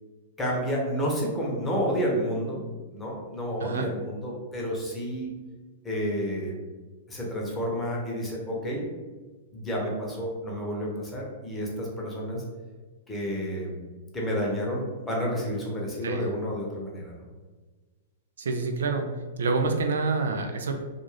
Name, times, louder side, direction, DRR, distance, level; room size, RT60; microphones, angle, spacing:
voice 1, 0.4-2.6 2.9-5.3 5.8-6.6 7.1-8.8 9.5-12.4 13.1-13.8 14.1-17.2, equal, 10° left, -3 dB, 0.8 m, -30 dB
voice 2, 18.4-19.1 19.4-20.8, right 3 dB, 80° right, 4 dB, 0.3 m, -27 dB
2.4 x 2.4 x 3.2 m, 1.3 s
hypercardioid pair, 125°, 0 cm